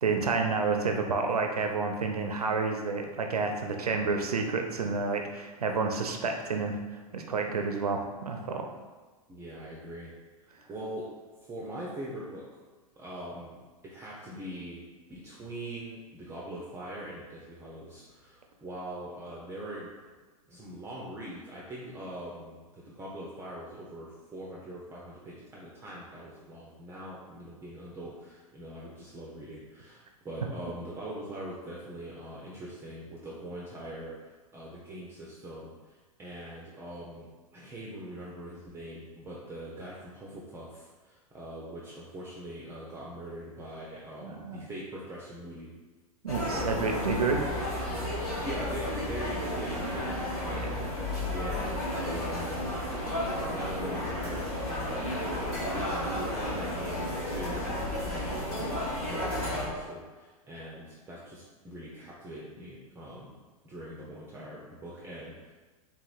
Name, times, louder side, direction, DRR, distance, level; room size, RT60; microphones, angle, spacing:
voice 1, 0.0-6.8 7.1-8.7 44.2-44.6 46.2-47.5 51.1-51.2, right 4 dB, 85° right, 4 dB, 0.4 m, -29 dB
voice 2, 9.3-10.1 10.7-11.0 11.5-12.6 13.0-13.6 13.8-14.8 15.1-19.9 20.5-45.7 46.4-46.9 47.2-47.4 48.2-52.8 53.4-55.1 55.6-63.3 63.6-65.5, right 1 dB, 15° right, -5 dB, 0.4 m, -42 dB
sound 1, 46.3-59.7, left 1 dB, 75° left, 1.5 m, -32 dB
3.4 x 2.9 x 2.4 m, 1.3 s
figure-of-eight pair, 95°, 19 cm